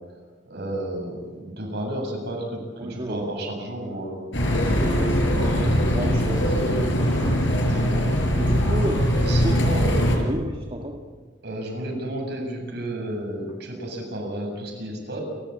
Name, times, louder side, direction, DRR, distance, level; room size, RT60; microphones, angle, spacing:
voice 1, 0.4-4.2 7.6-8.6 9.1-10.2 11.4-15.2, right 1 dB, 60° right, 1 dB, 7.9 m, -32 dB
voice 2, 2.8-3.3 4.5-7.4 8.3-9.6 10.1-11.0, equal, 30° right, 2 dB, 1.7 m, -32 dB
sound 1, 4.3-10.2, equal, 70° left, 5.5 m, -21 dB
29.5 x 15.0 x 8.8 m, 1.4 s
head